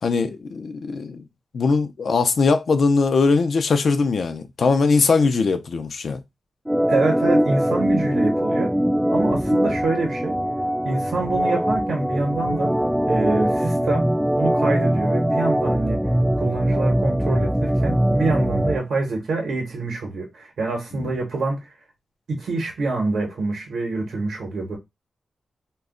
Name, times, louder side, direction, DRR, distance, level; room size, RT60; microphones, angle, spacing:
voice 1, 0.0-1.2 1.5-6.2 20.9-21.1, left 4 dB, 65° left, 0.4 m, -20 dB
Organ, 6.7-18.8, equal, 5° right, 0.3 m, -22 dB
voice 2, 6.9-8.8 9.1-10.4 10.8-12.7 13.1-14.1 14.3-16.0 16.4-21.7 22.3-24.8, right 3 dB, 80° right, 0.8 m, -26 dB
2.2 x 2.1 x 3.6 m
cardioid pair, 80°, 0 cm